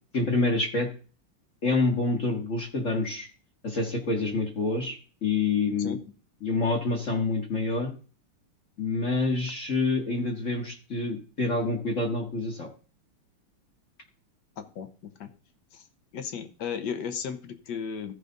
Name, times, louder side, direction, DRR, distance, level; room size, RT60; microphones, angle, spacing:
voice 1, 0.1-0.9 1.6-3.3 3.6-6.0 6.4-7.9 8.8-12.7, left 3 dB, 40° left, 1 dB, 1.4 m, -27 dB
voice 2, 14.6-14.9 15.2-15.3 15.7-15.8 16.1-18.1, left 7 dB, 60° left, 9 dB, 1.4 m, -34 dB
14.5 x 5.0 x 3.9 m, 0.38 s
omnidirectional pair, 2.4 m